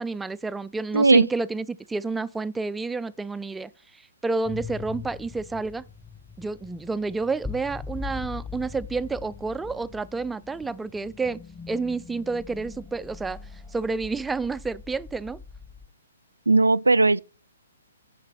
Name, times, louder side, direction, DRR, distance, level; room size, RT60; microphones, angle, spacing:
voice 1, 0.0-5.8 6.4-11.4 11.7-15.4, right 3 dB, 5° right, 0.4 m, -30 dB
voice 2, 0.9-1.2 16.5-17.2, right 3 dB, 80° right, 0.4 m, -17 dB
sound 1, 4.4-15.9, left 5 dB, 10° left, 1.1 m, -41 dB
9.5 x 6.4 x 4.2 m
figure-of-eight pair, 125°, 0 cm